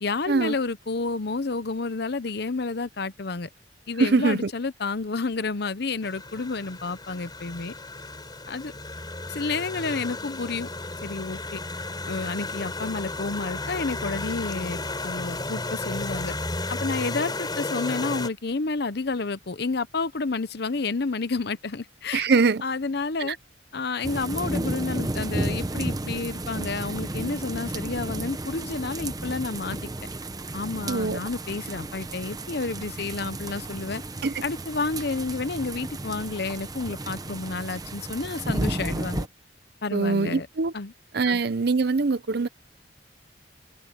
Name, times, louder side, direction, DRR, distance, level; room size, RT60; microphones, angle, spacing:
voice 1, 0.0-3.5 3.9-7.7 8.5-8.7 9.3-10.7 11.0-11.6 12.1-16.3 16.7-22.3 22.6-23.4 23.7-29.9 30.5-34.0 34.4-39.3 39.8-40.5 40.7-40.9 41.3-41.4, left 3 dB, 60° left, 0.8 m, -30 dB
voice 2, 4.0-4.5 22.1-22.6 23.2-23.4 30.9-31.2 34.2-34.3 39.9-40.7 41.1-42.5, right 4 dB, 60° right, 0.6 m, -23 dB
sound 1, 6.0-18.3, left 2 dB, 25° left, 3.9 m, -33 dB
sound 2, 24.0-39.3, right 2 dB, 20° right, 0.8 m, -33 dB
head